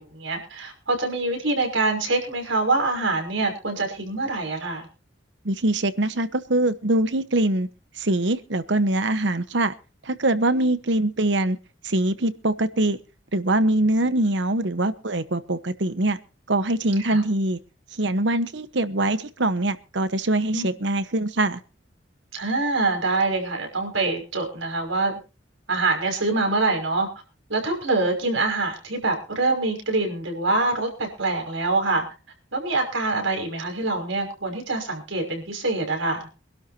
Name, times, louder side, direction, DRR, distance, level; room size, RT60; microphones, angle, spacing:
voice 1, 0.0-4.9 17.0-17.2 20.5-20.7 22.3-25.2 25.7-27.1 27.5-32.1 32.5-36.3, right 3 dB, 80° right, 4 dB, 5.9 m, -25 dB
voice 2, 5.4-7.7 8.0-9.7 10.1-11.6 11.8-13.0 13.3-16.2 16.5-17.6 18.0-21.6, right 1 dB, 65° right, 12 dB, 1.1 m, -23 dB
25.0 x 12.0 x 2.8 m, 0.32 s
head